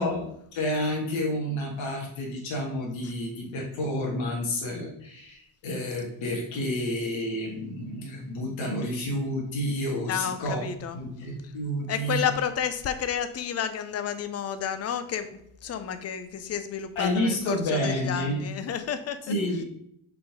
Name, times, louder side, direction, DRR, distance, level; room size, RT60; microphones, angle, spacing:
voice 1, 0.0-10.6 10.9-12.2 17.0-18.4 19.3-19.6, left 1 dB, 65° left, -1 dB, 1.8 m, -30 dB
voice 2, 10.1-11.0 11.4-11.5 11.9-19.3, left 8 dB, 30° left, 10 dB, 0.5 m, -31 dB
5.6 x 4.1 x 5.0 m, 0.70 s
cardioid pair, 165°, 49 cm